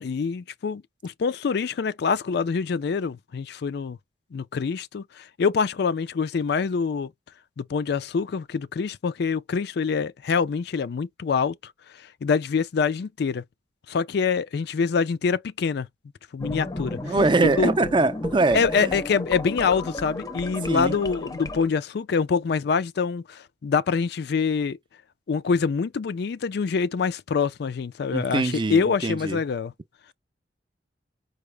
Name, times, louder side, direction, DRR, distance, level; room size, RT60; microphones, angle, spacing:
voice 1, 0.0-4.0 4.3-7.1 7.6-13.4 13.9-15.9 16.3-17.2 17.4-17.7 18.5-24.8 25.3-29.7, left 5 dB, 65° left, 0.4 m, -25 dB
sound 1, 16.4-21.7, left 2 dB, 20° left, 0.6 m, -33 dB
voice 2, 17.0-19.0 20.7-21.0 28.1-29.4, right 3 dB, 30° right, 0.5 m, -23 dB
4.8 x 2.1 x 3.3 m
head